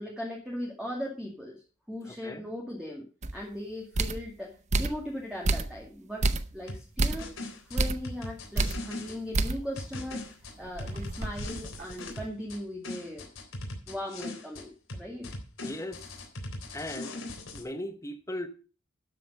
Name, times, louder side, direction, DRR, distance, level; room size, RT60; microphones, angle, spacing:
voice 1, 0.0-1.6 1.9-3.0 3.3-7.3 7.7-10.2 10.6-13.3 13.9-15.3, equal, 5° right, 2.2 m, -38 dB
voice 2, 2.0-2.5 15.6-16.1 16.7-17.2 17.5-18.5, left 1 dB, 15° left, 1.2 m, -38 dB
sound 1, 3.2-3.4 3.9-4.3 4.7-5.0 5.4-5.9 6.2-6.5 7.0-7.3 7.8-8.1 8.6-8.8 9.3-9.7 10.1-10.2 10.6-12.1, right 2 dB, 35° right, 0.7 m, -29 dB
sound 2, 6.7-9.2 9.8-12.6 12.8-14.6 14.9-17.6, left 2 dB, 85° left, 3.6 m, -40 dB
12.0 x 7.7 x 5.4 m
head